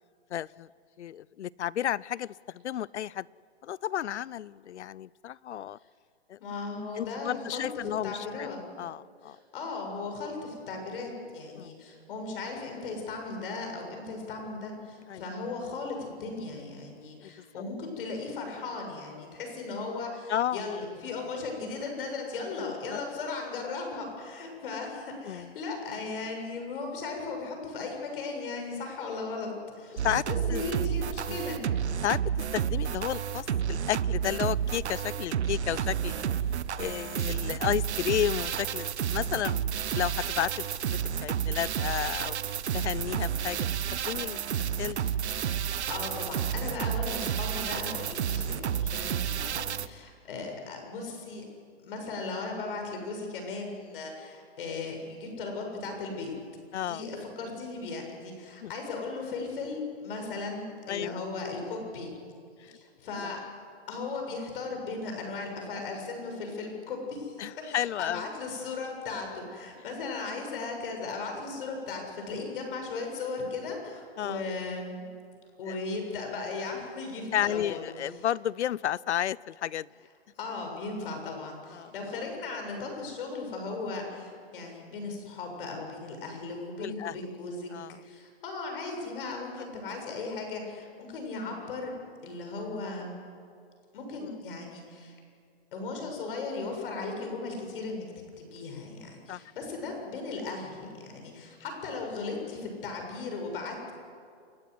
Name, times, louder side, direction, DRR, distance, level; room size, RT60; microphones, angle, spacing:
voice 1, 0.3-0.7 1.0-3.3 3.6-5.8 6.3-6.4 7.0-8.5 8.8-9.4 11.6-11.7 15.1-15.2 17.2-17.6 20.3-20.8 22.6-23.0 25.3-25.5 30.0-30.2 30.5-30.6 31.3-31.4 32.0-32.2 32.5-36.2 36.7-42.4 42.7-43.7 44.0-45.0 49.5-49.8 56.7-57.0 58.6-58.7 60.9-61.2 62.6-62.8 63.2-63.4 67.4-68.3 74.2-74.4 75.7-75.8 77.3-79.9 81.7-81.9 86.8-87.2 87.7-88.0 99.3-99.4, left 11 dB, 85° left, 23 dB, 0.6 m, -32 dB
voice 2, 6.4-7.7 8.0-8.6 9.2-31.6 44.9-45.1 45.9-51.5 51.8-56.3 56.8-62.1 62.7-63.4 63.9-75.1 75.6-77.8 78.2-78.3 80.4-87.7 88.0-91.9 92.2-93.1 93.9-95.1 95.7-98.0 98.4-103.9, left 3 dB, 55° left, 3 dB, 7.2 m, -37 dB
sound 1, 30.0-49.9, right 8 dB, 80° right, 1.0 m, -31 dB
29.0 x 13.0 x 9.6 m, 2.3 s
hypercardioid pair, 155°, 33 cm